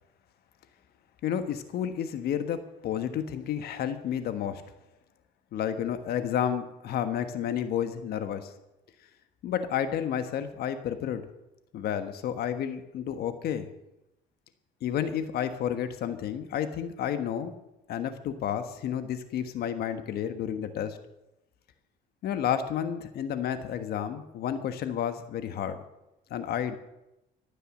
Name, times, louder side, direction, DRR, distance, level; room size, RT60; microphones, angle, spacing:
voice 1, 1.2-4.6 5.5-8.5 9.4-11.3 11.7-13.7 14.8-17.5 17.9-21.0 22.2-25.8 26.3-26.8, left 9 dB, 70° left, 10 dB, 1.4 m, -31 dB
14.0 x 9.4 x 7.6 m, 0.90 s
cardioid pair, 110°, 17 cm